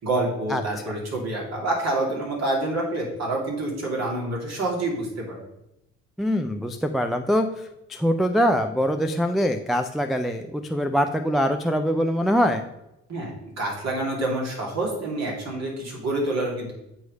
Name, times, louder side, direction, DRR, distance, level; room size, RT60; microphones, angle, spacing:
voice 1, 0.0-5.4 13.1-13.3 13.6-16.7, right 2 dB, 45° right, -3 dB, 2.6 m, -27 dB
voice 2, 6.2-12.6, equal, ahead, 5 dB, 0.3 m, -23 dB
8.2 x 3.1 x 5.1 m, 0.87 s
hypercardioid pair, 50°, 36 cm